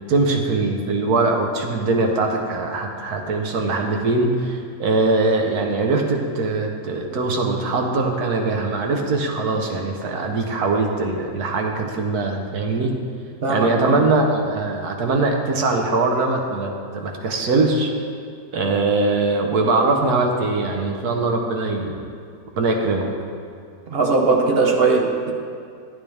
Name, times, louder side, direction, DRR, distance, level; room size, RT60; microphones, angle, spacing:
voice 1, 0.1-12.9 13.5-17.9 18.5-22.0 22.6-23.1, right 3 dB, 90° right, 2 dB, 1.5 m, -21 dB
voice 2, 13.4-14.0 23.9-25.3, right 3 dB, 50° right, 2 dB, 0.8 m, -19 dB
10.5 x 9.7 x 3.3 m, 2.4 s
omnidirectional pair, 1.6 m